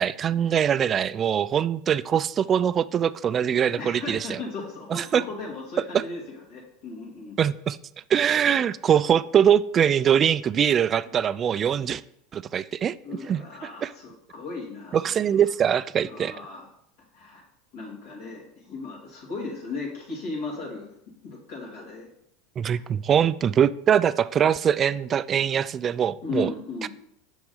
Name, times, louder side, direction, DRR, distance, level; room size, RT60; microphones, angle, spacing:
voice 1, 0.0-4.4 4.9-5.2 5.9-6.0 7.4-7.8 8.1-12.0 12.3-13.4 13.8-13.9 14.9-16.3 22.6-26.5 26.8-26.9, right 8 dB, 35° right, 0.3 m, -23 dB
voice 2, 3.8-7.4 13.0-15.3 16.0-16.7 17.1-17.4 17.7-20.9 21.2-22.1 22.6-22.8 26.2-26.9, left 3 dB, 70° left, 2.3 m, -36 dB
6.1 x 6.0 x 3.9 m
hypercardioid pair, 100°, 0 cm